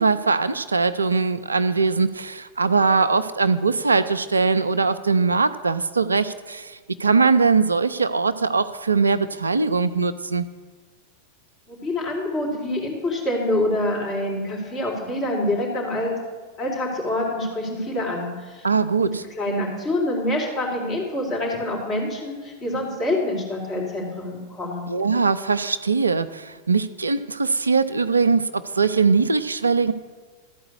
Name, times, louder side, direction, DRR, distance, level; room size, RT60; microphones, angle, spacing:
voice 1, 0.0-10.5 18.6-19.2 24.9-29.9, right 4 dB, 75° right, 13 dB, 0.4 m, -21 dB
voice 2, 11.7-16.1 16.6-18.7 19.0-24.9, left 1 dB, 30° left, -3 dB, 3.7 m, -26 dB
13.5 x 4.8 x 8.2 m, 1.4 s
figure-of-eight pair, 90°, 0 cm